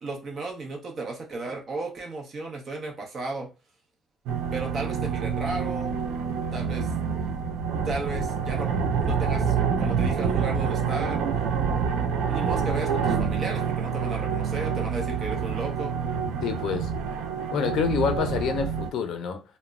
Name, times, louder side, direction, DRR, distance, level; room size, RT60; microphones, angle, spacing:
voice 1, 0.0-3.5 4.5-6.0 6.5-6.9 7.8-8.7 9.0-11.2 12.3-15.9, right 3 dB, 35° right, 0.7 m, -34 dB
sound 1, 4.3-18.9, right 6 dB, 85° right, 0.4 m, -27 dB
voice 2, 16.4-16.9 17.5-19.4, left 7 dB, 60° left, 0.4 m, -27 dB
3.0 x 2.0 x 2.3 m
cardioid pair, 160°, 0 cm